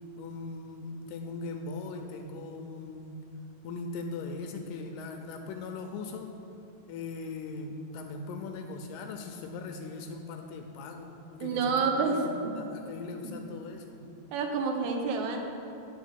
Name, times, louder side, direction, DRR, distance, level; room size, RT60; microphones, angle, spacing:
voice 1, 0.2-3.2 3.6-6.4 6.9-14.0, left 3 dB, 80° left, 4 dB, 2.1 m, -40 dB
voice 2, 11.4-12.5 13.2-13.3 14.3-15.4, right 4 dB, 70° right, 2 dB, 1.9 m, -29 dB
10.5 x 4.4 x 7.8 m, 2.8 s
omnidirectional pair, 4.4 m